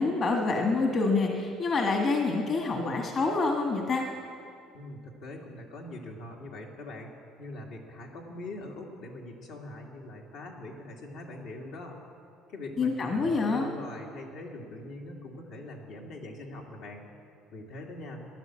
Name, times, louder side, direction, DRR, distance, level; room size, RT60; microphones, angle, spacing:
voice 1, 0.0-4.0 12.8-13.7, left 3 dB, 40° left, 2 dB, 1.6 m, -27 dB
voice 2, 4.7-7.1 7.4-12.0 12.5-17.0 17.5-18.2, left 1 dB, 75° left, 0 dB, 2.3 m, -42 dB
15.0 x 11.0 x 7.6 m, 2.4 s
cardioid pair, 125°, 0 cm